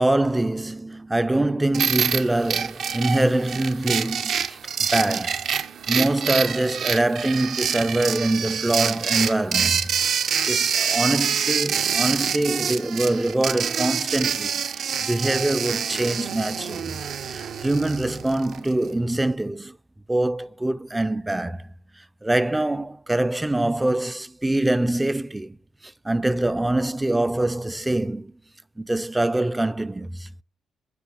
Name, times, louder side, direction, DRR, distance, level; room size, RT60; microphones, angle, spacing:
voice 1, 0.0-5.5 5.9-9.9 10.5-17.0 17.3-19.8 20.1-21.7 22.0-25.6 25.8-28.3 28.8-30.3, right 1 dB, 10° right, 0.3 m, -24 dB
sound 1, 1.7-18.7, right 7 dB, 65° right, 0.6 m, -26 dB
8.4 x 5.0 x 4.1 m
cardioid pair, 90°, 0 cm